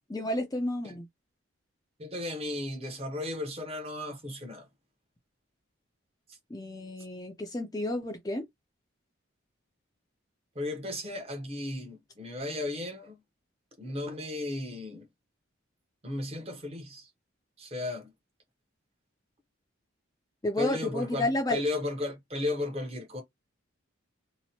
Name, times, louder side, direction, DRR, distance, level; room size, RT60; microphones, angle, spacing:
voice 1, 0.1-1.1 6.5-8.4 20.4-21.6, left 1 dB, 20° left, 0.4 m, -31 dB
voice 2, 2.0-4.7 10.5-13.2 13.8-15.1 16.0-17.1 17.6-18.1 20.6-23.2, left 2 dB, 30° right, 0.7 m, -35 dB
2.8 x 2.1 x 2.8 m
head